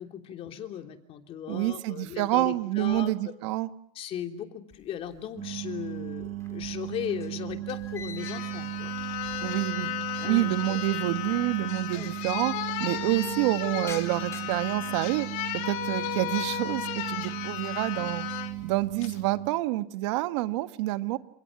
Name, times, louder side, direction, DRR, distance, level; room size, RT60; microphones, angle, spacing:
voice 1, 0.0-3.1 3.9-8.9 10.2-10.8 11.9-12.1, left 9 dB, 40° left, 5 dB, 3.2 m, -37 dB
voice 2, 1.5-3.7 9.4-9.9 10.2-12.5 12.8-15.3 15.7-18.3 18.6-21.2, right 17 dB, 85° right, 10 dB, 1.7 m, -28 dB
sound 1, 4.7-5.6 5.9-10.0 10.2-10.3 11.2-11.3 11.5-11.6 11.8-12.3 12.7-15.9 16.4-16.9 17.3-17.7 18.1-19.0, left 5 dB, 20° left, 4.0 m, -50 dB
sound 2, 5.4-19.5, right 17 dB, 60° right, 3.4 m, -36 dB
sound 3, 7.7-7.8 8.2-18.5 19.0-19.2, left 13 dB, 65° left, 3.9 m, -34 dB
29.0 x 28.5 x 6.2 m, 0.69 s
cardioid pair, 150°, 15 cm